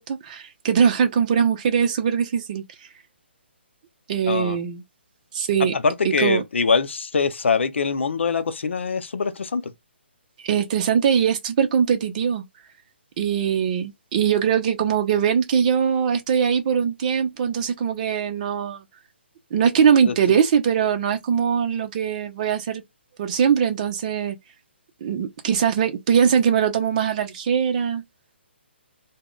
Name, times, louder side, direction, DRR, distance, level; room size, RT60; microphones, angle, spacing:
voice 1, 0.0-2.6 4.1-4.8 5.3-5.7 6.2-6.4 10.4-12.4 13.2-18.8 19.5-22.8 23.2-24.4 25.0-28.0, right 7 dB, 35° right, 0.6 m, -21 dB
voice 2, 4.3-4.6 5.6-9.7 20.1-20.2, left 5 dB, 80° left, 0.5 m, -23 dB
2.3 x 2.1 x 3.6 m
hypercardioid pair, 155°, 6 cm